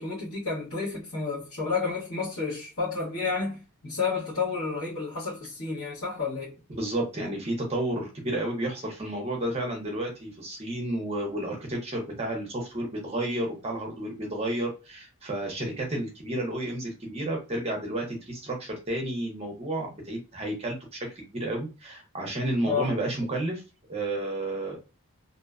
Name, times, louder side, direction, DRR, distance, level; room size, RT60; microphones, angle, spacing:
voice 1, 0.0-6.5 22.6-22.9, left 4 dB, 70° left, 1.0 m, -31 dB
voice 2, 6.7-23.6 23.9-24.8, right 1 dB, 25° right, 0.6 m, -31 dB
2.6 x 2.1 x 2.3 m
head